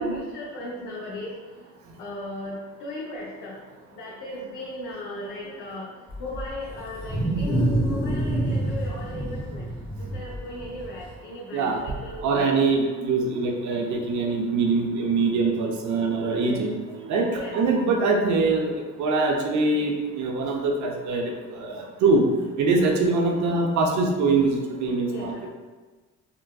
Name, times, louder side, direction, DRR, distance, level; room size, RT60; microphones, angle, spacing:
voice 1, 0.0-1.3 2.0-3.6 3.9-5.9 6.2-9.7 10.0-12.4 16.4-16.6 17.3-17.6 25.1-25.5, left 1 dB, 80° left, -7 dB, 0.7 m, -37 dB
Wild animals, 6.1-11.1, right 1 dB, 30° left, 1.1 m, -27 dB
voice 2, 12.2-16.7 17.1-18.7 19.0-22.2 22.6-25.5, right 3 dB, 70° right, 1 dB, 0.6 m, -23 dB
3.9 x 2.2 x 2.2 m, 1.3 s
cardioid pair, 90°, 30 cm